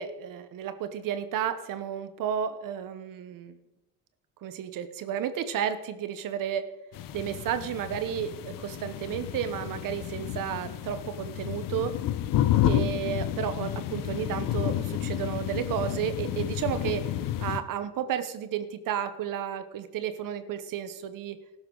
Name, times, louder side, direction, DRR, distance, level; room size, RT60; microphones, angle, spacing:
voice 1, 0.0-3.6 4.4-6.7 7.1-12.0 12.7-17.1 17.4-21.4, right 9 dB, 60° right, 11 dB, 1.0 m, -32 dB
sound 1, 6.9-17.6, left 12 dB, 65° left, 0.9 m, -30 dB
13.5 x 12.0 x 3.9 m, 0.99 s
supercardioid pair, 85°, 36 cm